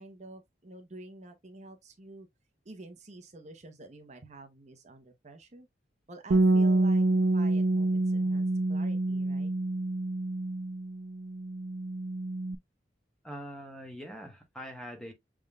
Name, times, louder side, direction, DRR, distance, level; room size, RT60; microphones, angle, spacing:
voice 1, 0.0-2.3 2.6-5.7 6.1-7.0 7.3-9.5, right 2 dB, 40° right, 0.9 m, -49 dB
Bass guitar, 6.3-12.6, right 2 dB, 80° right, 0.5 m, -27 dB
voice 2, 13.2-15.1, equal, 5° left, 1.1 m, -43 dB
6.4 x 3.6 x 2.2 m
head